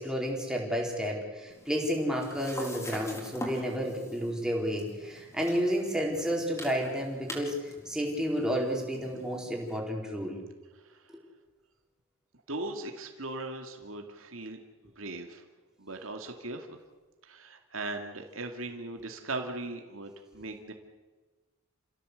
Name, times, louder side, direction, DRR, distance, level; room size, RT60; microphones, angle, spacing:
voice 1, 0.0-10.4, equal, 5° right, -1 dB, 4.5 m, -31 dB
sound 1, 1.5-9.8, equal, 15° left, 4.3 m, -45 dB
voice 2, 12.5-14.6 15.0-15.4 15.8-16.8 17.3-20.7, right 2 dB, 70° right, 4 dB, 2.4 m, -38 dB
29.5 x 16.5 x 8.2 m, 1.2 s
head